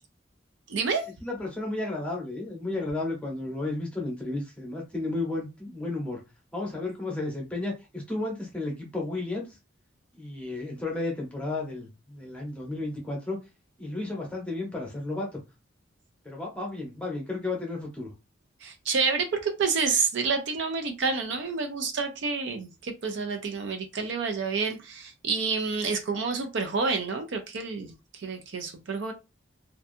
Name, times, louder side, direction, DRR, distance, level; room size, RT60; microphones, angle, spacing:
voice 1, 0.7-1.1 18.6-29.1, right 4 dB, 65° right, 0.4 m, -29 dB
voice 2, 1.2-6.2 6.5-9.6 10.2-13.4 13.8-15.4 16.2-18.1, left 2 dB, 5° left, 0.8 m, -33 dB
2.6 x 2.2 x 2.6 m
head